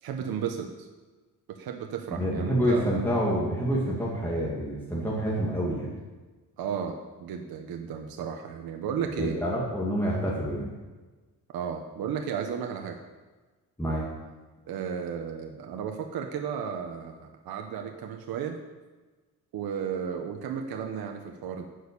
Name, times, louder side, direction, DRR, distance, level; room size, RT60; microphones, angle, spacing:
voice 1, 0.0-0.9 1.5-3.0 6.6-9.3 11.5-13.0 14.7-18.6 19.5-21.7, right 7 dB, 80° right, 4 dB, 1.3 m, -34 dB
voice 2, 2.1-5.9 9.2-10.7 13.8-14.0, equal, 5° left, -6 dB, 2.6 m, -27 dB
12.5 x 6.6 x 8.5 m, 1.3 s
cardioid pair, 135°, 36 cm